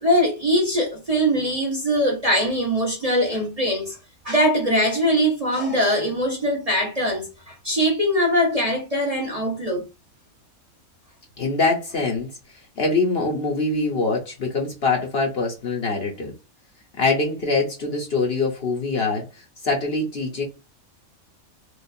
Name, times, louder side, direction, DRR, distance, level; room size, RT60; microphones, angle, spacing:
voice 1, 0.0-4.0 4.2-9.8, equal, 30° right, 0.9 m, -22 dB
voice 2, 11.4-12.3 12.8-16.3 17.0-20.4, left 3 dB, 50° left, 1.0 m, -24 dB
4.8 x 2.4 x 2.6 m
omnidirectional pair, 1.5 m